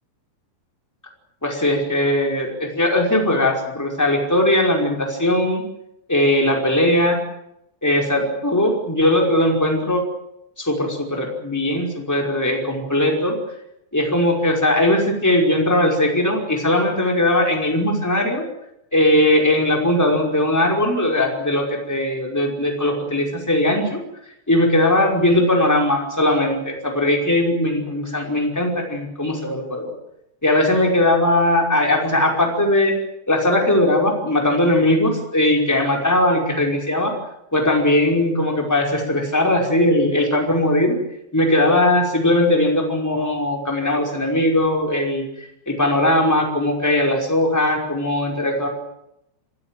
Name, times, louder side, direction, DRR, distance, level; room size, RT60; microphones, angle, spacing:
voice 1, 1.4-5.6 6.1-7.2 7.8-10.0 10.6-13.3 13.9-18.4 18.9-24.0 24.5-29.9 30.4-32.9 33.3-37.1 37.5-40.9 41.3-48.7, left 1 dB, 5° left, 1 dB, 4.7 m, -19 dB
28.0 x 16.5 x 9.3 m, 0.82 s
omnidirectional pair, 5.2 m